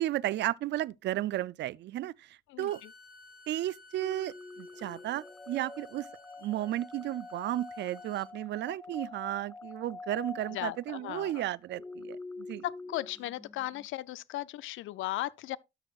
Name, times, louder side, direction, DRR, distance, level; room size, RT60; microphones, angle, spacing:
voice 1, 0.0-2.8 3.5-6.1 6.4-12.6, right 14 dB, 65° right, 0.4 m, -34 dB
Bowed string instrument, 2.6-8.3, left 2 dB, 45° left, 1.1 m, -56 dB
sound 1, 4.0-13.9, left 3 dB, 10° left, 0.6 m, -46 dB
voice 2, 10.5-11.4 12.6-15.6, left 15 dB, 80° left, 0.5 m, -36 dB
12.5 x 6.4 x 2.4 m
cardioid pair, 90°, 20 cm